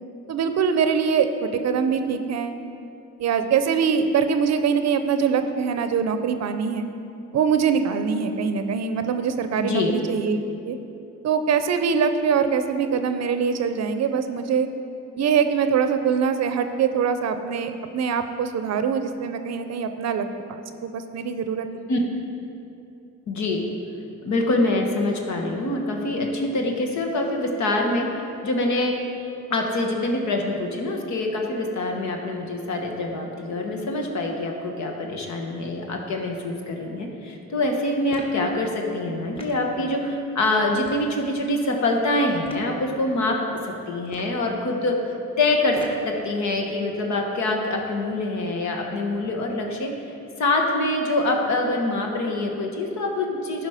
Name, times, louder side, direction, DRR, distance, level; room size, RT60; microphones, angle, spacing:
voice 1, 0.3-2.6 3.2-6.9 7.3-10.4 10.6-10.8 11.2-14.7 15.2-21.7, right 6 dB, 60° right, 9 dB, 0.6 m, -23 dB
voice 2, 9.6-9.9 21.9-22.0 23.3-23.7 24.2-29.0 29.5-43.4 43.6-45.0 45.4-49.9 50.4-53.7, left 2 dB, 65° left, 1 dB, 1.3 m, -25 dB
sound 1, 38.1-38.4 39.4-39.6 40.8-41.1 42.4-42.7 44.0-44.4 45.7-46.1, left 1 dB, 20° left, 1.2 m, -40 dB
11.5 x 5.1 x 4.9 m, 2.7 s
cardioid pair, 90°, 30 cm